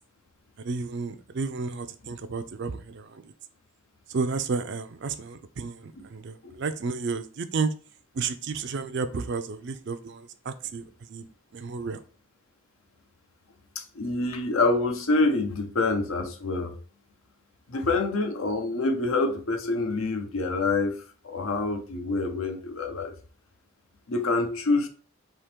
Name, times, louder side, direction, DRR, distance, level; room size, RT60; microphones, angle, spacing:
voice 1, 0.6-3.2 4.1-7.7 8.1-11.2 11.5-12.0, right 4 dB, 55° right, 0.4 m, -32 dB
voice 2, 13.7-16.8 17.7-23.1 24.1-24.9, left 3 dB, 70° left, 0.7 m, -26 dB
3.6 x 2.9 x 4.4 m
head